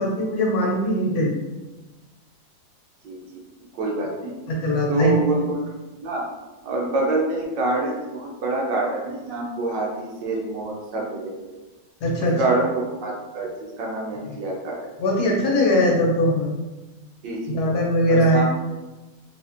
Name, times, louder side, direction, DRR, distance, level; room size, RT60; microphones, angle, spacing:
voice 1, 0.0-1.4 4.5-5.2 12.0-12.4 14.3-14.4 15.0-16.5 17.5-18.4, equal, 65° left, -3 dB, 1.1 m, -21 dB
voice 2, 3.0-3.4 3.7-4.3 4.9-5.6 5.9-6.3 6.6-11.3 12.2-13.5 13.8-14.8 17.2-17.6 18.1-18.4, right 2 dB, 75° right, -2 dB, 1.4 m, -26 dB
4.2 x 2.5 x 2.5 m, 1.1 s
omnidirectional pair, 2.0 m